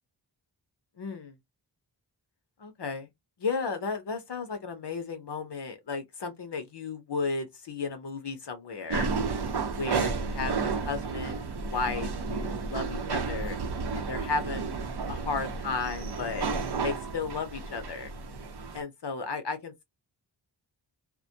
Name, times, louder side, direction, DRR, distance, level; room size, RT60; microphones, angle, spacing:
voice 1, 1.0-1.3 2.6-3.1 3.4-9.1 9.8-13.6 13.9-14.7 15.1-16.5 16.8-18.1 18.7-19.8, left 4 dB, 60° left, 0.7 m, -34 dB
sound 1, 8.9-18.8, right 4 dB, 55° right, 0.6 m, -32 dB
2.1 x 2.1 x 2.6 m
cardioid pair, 45°, 47 cm